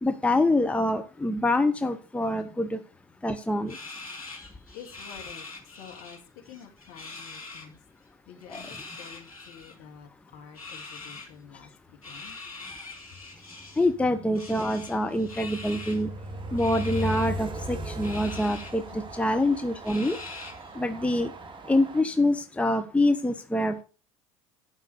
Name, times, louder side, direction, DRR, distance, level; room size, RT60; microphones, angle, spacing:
voice 1, 0.0-2.8 3.2-3.7 8.5-8.6 13.8-16.1 16.5-20.2 20.8-21.3 21.7-23.8, left 1 dB, 5° left, 8 dB, 0.8 m, -25 dB
sound 1, 3.7-6.2 6.4-7.7 8.4-9.7 10.5-11.3 12.0-13.9 14.3-16.0 16.6-17.3 18.0-18.7 19.1-19.2 19.8-20.7, left 3 dB, 85° left, 2.4 m, -43 dB
voice 2, 4.7-5.5 5.8-7.8 8.3-12.4 18.9-19.1, left 8 dB, 50° left, 3 dB, 2.7 m, -48 dB
Train, 13.6-22.0, equal, 25° right, 1.4 m, -38 dB
11.5 x 5.3 x 6.5 m, 0.36 s
figure-of-eight pair, 70°, 18 cm